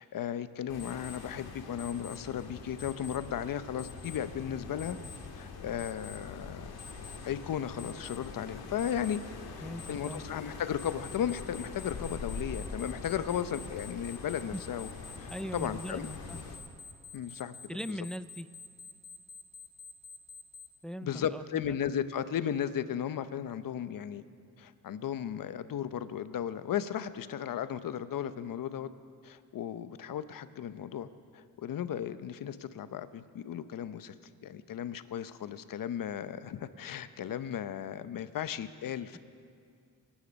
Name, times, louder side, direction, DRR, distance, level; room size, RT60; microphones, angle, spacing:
voice 1, 0.0-5.0 5.4-6.7 7.2-9.2 9.6-14.9 15.2-16.1 17.1-17.6 17.9-18.0 21.0-24.2 24.6-28.9 29.2-31.1 31.3-34.1 34.4-39.2, left 9 dB, 60° left, 12 dB, 0.8 m, -35 dB
sound 1, 0.7-16.6, left 4 dB, 80° left, 2.0 m, -44 dB
Alarm, 0.8-1.2 1.8-2.2 2.8-3.2 3.8-4.2 4.8-5.2 5.8-6.2 6.8-7.2 7.8-8.2 8.8-9.2 9.8-10.2 10.8-20.7, left 6 dB, 45° left, 2.0 m, -48 dB
voice 2, 9.6-10.2 14.5-14.6 15.3-16.4 17.7-18.5 20.8-21.8, equal, ahead, 13 dB, 0.3 m, -40 dB
24.5 x 10.5 x 5.3 m, 2.3 s
cardioid pair, 90°, 37 cm